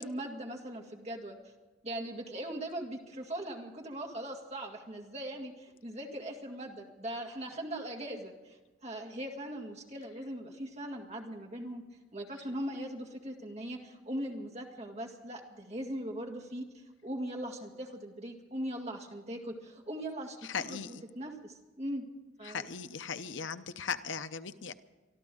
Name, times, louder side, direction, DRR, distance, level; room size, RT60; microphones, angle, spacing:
voice 1, 0.0-1.4 1.8-11.8 12.1-16.6 17.0-22.1 22.4-22.7, right 1 dB, 35° right, 1 dB, 2.0 m, -40 dB
voice 2, 20.4-21.0 22.4-24.7, left 6 dB, 80° left, 11 dB, 0.7 m, -38 dB
24.5 x 13.0 x 3.8 m, 1.2 s
head